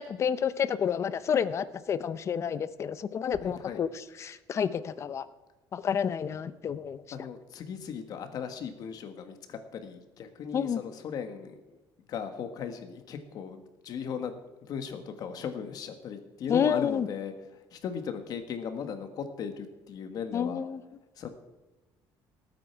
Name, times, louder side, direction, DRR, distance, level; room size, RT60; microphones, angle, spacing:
voice 1, 0.0-5.3 5.7-7.0 10.5-10.8 16.5-17.1 20.3-20.8, left 7 dB, 35° left, 14 dB, 0.6 m, -29 dB
voice 2, 3.4-3.8 7.1-11.8 12.1-20.6 21.2-21.3, left 7 dB, 50° left, 8 dB, 1.6 m, -38 dB
19.0 x 8.9 x 4.6 m, 1.1 s
cardioid pair, 160°, 9 cm